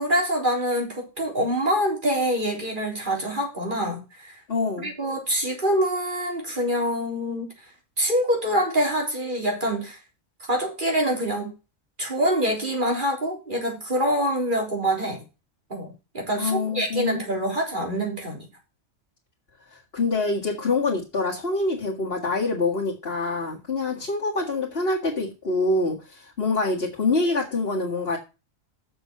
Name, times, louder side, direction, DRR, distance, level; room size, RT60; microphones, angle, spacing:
voice 1, 0.0-4.3 4.8-7.5 8.0-10.0 10.4-11.5 12.0-15.2 15.7-18.4, equal, 40° right, 0 dB, 3.8 m, -25 dB
voice 2, 4.5-4.9 16.4-17.2 19.7-28.2, left 3 dB, 50° left, -4 dB, 2.2 m, -25 dB
6.9 x 6.8 x 6.6 m, 0.29 s
omnidirectional pair, 1.3 m